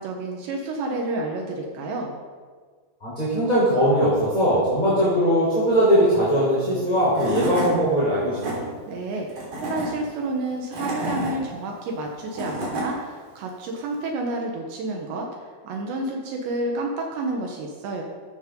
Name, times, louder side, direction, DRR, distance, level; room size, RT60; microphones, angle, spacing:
voice 1, 0.0-2.1 8.9-9.3 9.6-18.0, right 2 dB, 75° right, 1 dB, 3.4 m, -30 dB
voice 2, 3.0-8.6, equal, 10° left, -9 dB, 3.9 m, -20 dB
Tools / Wood, 6.8-6.9 7.1-7.7 8.2-8.5 9.3-9.9 10.5-11.3 12.1-12.9, equal, 45° right, 4.6 m, -29 dB
15.5 x 13.0 x 3.9 m, 1.5 s
omnidirectional pair, 5.3 m